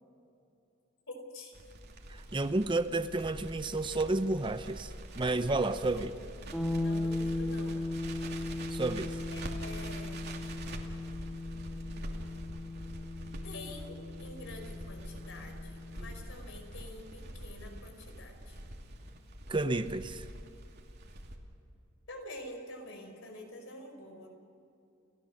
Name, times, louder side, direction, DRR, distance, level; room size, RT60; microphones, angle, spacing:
voice 1, 1.1-1.6 5.9-7.8 9.3-10.2 13.4-18.6 22.1-24.3, left 1 dB, 65° left, 3 dB, 5.4 m, -47 dB
Crackle, 1.5-21.4, right 1 dB, 50° right, 2.7 m, -45 dB
voice 2, 2.1-6.1 8.7-9.2 19.5-20.2, right 2 dB, 25° right, 11 dB, 0.6 m, -31 dB
sound 1, 6.5-16.3, left 2 dB, 10° left, 4.7 m, -37 dB
29.5 x 17.0 x 6.5 m, 2.7 s
head